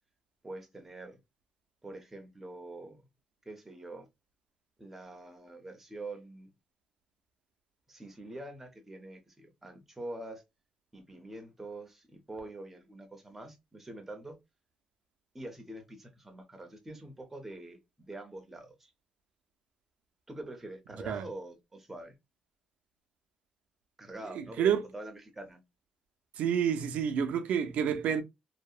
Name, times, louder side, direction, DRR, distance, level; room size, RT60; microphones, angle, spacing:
voice 1, 0.4-1.2 1.8-3.0 3.5-4.1 4.8-6.5 7.9-10.4 10.9-14.4 15.3-18.9 20.3-22.1 24.0-25.6, right 2 dB, 10° right, 0.5 m, -45 dB
voice 2, 24.3-24.8 26.3-28.2, right 8 dB, 75° right, 0.4 m, -29 dB
2.7 x 2.0 x 2.3 m
cardioid pair, 170°, 2 cm